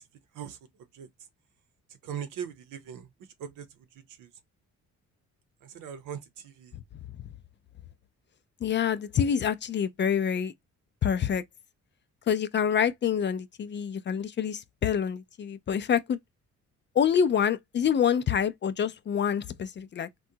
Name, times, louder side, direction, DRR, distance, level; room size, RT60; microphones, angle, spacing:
voice 1, 2.0-3.1 3.4-3.7 4.2-4.3 5.6-6.7, right 8 dB, 85° right, 0.8 m, -39 dB
voice 2, 8.6-10.5 11.0-11.4 12.3-16.2 16.9-20.1, left 8 dB, 40° left, 0.4 m, -26 dB
3.7 x 2.3 x 2.7 m
cardioid pair, 90°, 30 cm